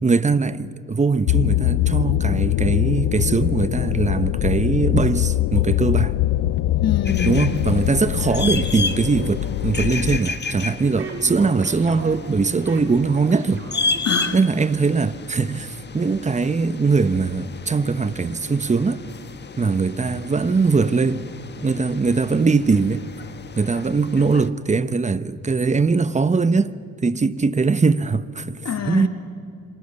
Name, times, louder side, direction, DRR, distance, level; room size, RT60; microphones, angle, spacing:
voice 1, 0.0-6.1 7.2-13.6 14.3-19.0 19.6-21.3 21.6-23.0 23.5-26.7 27.0-29.1, right 4 dB, 25° right, 1.0 m, -21 dB
sound 1, 1.3-10.2, left 16 dB, 85° left, 0.6 m, -22 dB
voice 2, 6.8-7.5 14.0-14.4 28.6-29.1, left 7 dB, 60° left, 2.6 m, -25 dB
sound 2, 7.1-24.5, left 3 dB, 35° left, 1.5 m, -33 dB
sound 3, 10.8-14.4, right 4 dB, 45° right, 3.5 m, -36 dB
28.5 x 25.5 x 7.0 m
cardioid pair, 90°, 30 cm